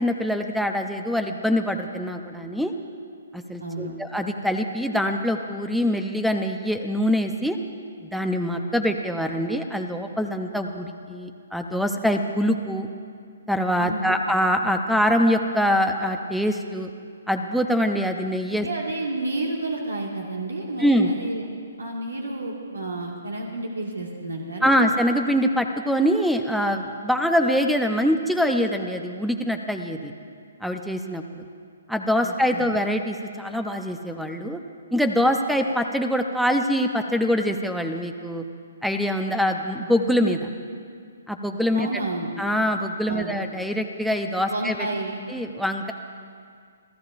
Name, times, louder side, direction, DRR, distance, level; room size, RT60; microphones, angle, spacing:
voice 1, 0.0-2.7 3.3-7.6 8.0-12.9 13.5-16.9 17.3-18.7 20.8-21.1 24.6-30.1 30.6-31.4 31.9-34.6 34.9-38.4 38.8-40.5 41.3-41.9 42.4-44.9 45.3-45.9, equal, ahead, 5 dB, 0.7 m, -24 dB
voice 2, 3.6-4.0 13.8-14.1 18.5-21.4 21.8-24.7 32.2-32.6 41.7-42.3 43.1-43.3 44.5-45.2, right 2 dB, 80° right, -1 dB, 2.0 m, -31 dB
28.0 x 14.0 x 2.6 m, 2.1 s
figure-of-eight pair, 135°, 0 cm